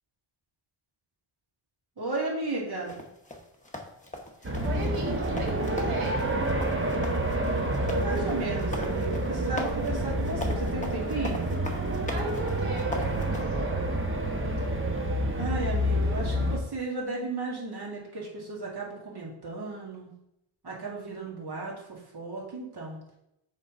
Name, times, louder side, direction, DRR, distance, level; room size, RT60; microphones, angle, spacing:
voice 1, 2.0-2.9 8.0-11.5 15.4-20.1 20.6-21.7 22.1-23.0, right 3 dB, 50° right, -4 dB, 2.1 m, -34 dB
sound 1, 2.9-13.4, left 2 dB, 15° left, 0.8 m, -39 dB
sound 2, 4.4-16.6, right 1 dB, 25° right, 0.8 m, -28 dB
voice 2, 4.4-6.2 12.1-13.9, right 4 dB, 85° right, 1 dB, 0.9 m, -39 dB
6.5 x 3.7 x 5.0 m, 0.83 s
wide cardioid pair, 105°, 50 cm